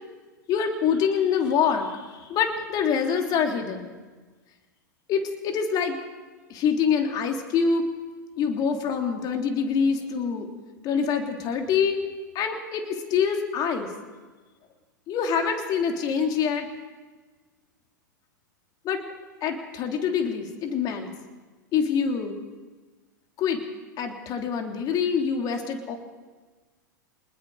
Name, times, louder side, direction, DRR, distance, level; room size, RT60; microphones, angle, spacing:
voice 1, 0.5-3.9 5.1-6.0 6.5-7.9 8.4-10.5 10.8-12.0 12.3-13.9 15.1-16.7 18.8-19.0 19.4-21.1 21.7-22.4 23.4-23.6 24.0-26.0, left 6 dB, 40° left, 3 dB, 3.3 m, -25 dB
25.5 x 20.5 x 5.0 m, 1.3 s
figure-of-eight pair, 100°, 10 cm